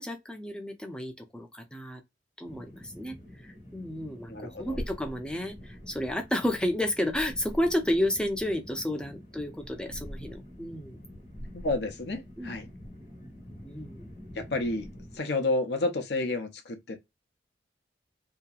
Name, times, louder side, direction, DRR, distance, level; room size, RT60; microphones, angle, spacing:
voice 1, 0.0-2.0 2.4-3.1 3.4-11.0 12.4-12.5 13.6-14.1, left 1 dB, 5° left, 0.5 m, -31 dB
sound 1, 2.4-15.2, equal, 40° left, 1.1 m, -45 dB
voice 2, 4.3-4.8 11.5-12.7 14.3-14.9 15.1-17.0, left 2 dB, 65° left, 0.6 m, -30 dB
2.8 x 2.7 x 2.3 m
head